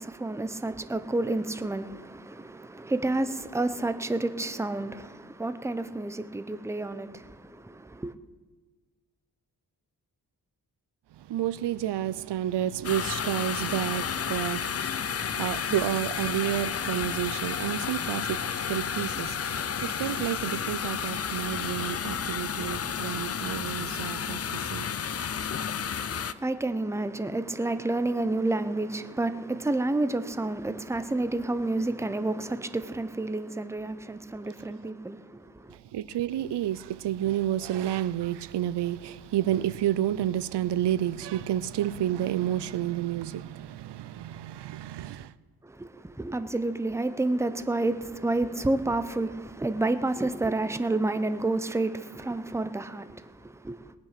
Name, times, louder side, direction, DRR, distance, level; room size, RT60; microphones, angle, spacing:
voice 1, 0.0-8.1 25.9-35.8 45.6-53.9, right 2 dB, 5° right, 0.7 m, -30 dB
voice 2, 11.2-25.0 35.7-45.3, right 12 dB, 80° right, 0.6 m, -30 dB
sound 1, 12.8-26.3, left 7 dB, 35° left, 0.5 m, -31 dB
18.0 x 9.0 x 6.7 m
cardioid pair, 90°, 40 cm